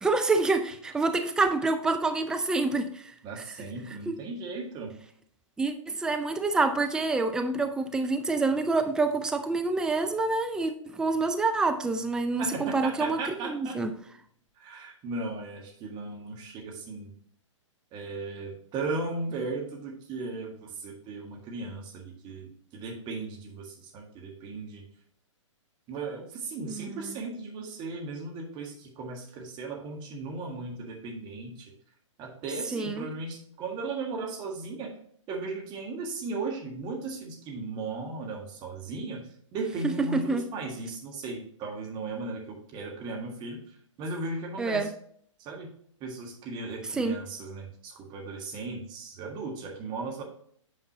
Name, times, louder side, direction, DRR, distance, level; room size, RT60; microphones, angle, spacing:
voice 1, 0.0-3.0 3.4-3.5 4.1-4.2 5.6-13.9 26.7-27.1 32.7-33.1 39.8-40.4 44.6-44.9 46.9-47.2, right 3 dB, 5° right, 0.5 m, -27 dB
voice 2, 3.2-4.9 12.4-13.8 14.6-17.1 17.9-24.8 25.9-31.7 32.2-34.9 35.3-39.2 39.5-44.9 45.4-45.7 46.0-50.2, right 3 dB, 25° right, 1.7 m, -36 dB
8.6 x 5.0 x 2.8 m
figure-of-eight pair, 125°, 17 cm